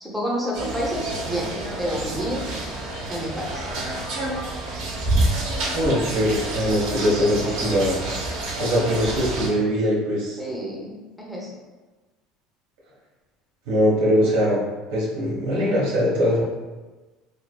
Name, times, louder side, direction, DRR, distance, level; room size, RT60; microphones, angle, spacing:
voice 1, 0.0-1.5 1.8-2.4 3.1-3.7 10.4-11.5, equal, ahead, -4 dB, 0.6 m, -29 dB
sound 1, 0.5-9.5, right 2 dB, 70° right, 0.7 m, -28 dB
voice 2, 5.7-7.9 8.6-10.4 13.7-14.6 14.9-16.4, equal, 90° right, -4 dB, 0.9 m, -21 dB
3.2 x 2.2 x 2.3 m, 1.2 s
supercardioid pair, 125°, 0 cm